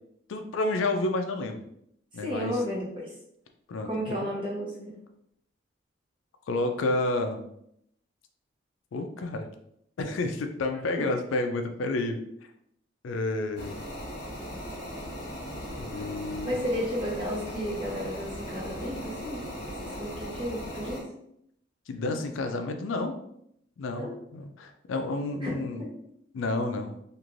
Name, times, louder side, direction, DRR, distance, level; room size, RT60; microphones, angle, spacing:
voice 1, 0.3-1.6 2.1-2.5 3.7-4.1 6.5-7.4 8.9-9.5 10.0-12.2 13.0-13.8 15.7-16.6 21.9-23.2 23.8-25.8 26.3-26.9, left 2 dB, 85° left, 6 dB, 0.4 m, -30 dB
voice 2, 2.1-3.1 3.8-5.0 11.0-11.1 16.4-21.0 23.9-24.1 25.4-25.9, equal, 25° right, -6 dB, 0.9 m, -33 dB
sound 1, 13.6-21.0, equal, 60° left, 1.2 m, -38 dB
3.1 x 2.5 x 2.5 m, 0.74 s
head